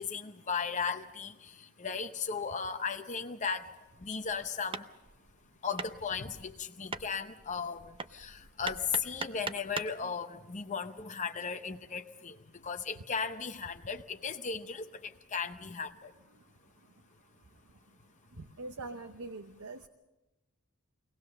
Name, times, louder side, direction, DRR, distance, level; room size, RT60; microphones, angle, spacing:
voice 1, 0.0-1.5 1.8-3.7 4.0-4.8 5.6-12.4 12.6-16.1, left 6 dB, 35° left, 7 dB, 0.7 m, -36 dB
Hammer, 4.0-10.0, right 4 dB, 25° right, 0.6 m, -42 dB
voice 2, 18.4-19.9, right 3 dB, 70° right, 7 dB, 0.9 m, -43 dB
23.5 x 18.5 x 6.7 m, 1.1 s
head